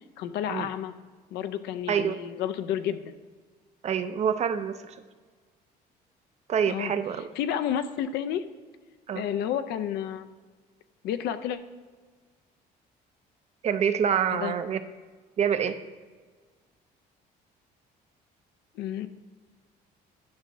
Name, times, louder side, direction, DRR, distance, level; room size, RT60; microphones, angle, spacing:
voice 1, 0.2-0.9 1.3-3.1 6.7-6.9 7.4-8.5 9.1-10.2 11.0-11.6 14.3-14.5 18.8-19.1, left 9 dB, 80° left, 10 dB, 0.5 m, -30 dB
voice 2, 3.8-5.0 6.5-7.3 9.1-9.3 13.6-14.8 15.4-15.8, right 8 dB, 40° right, 11 dB, 0.4 m, -26 dB
10.0 x 5.4 x 2.6 m, 1.4 s
cardioid pair, 110°, 17 cm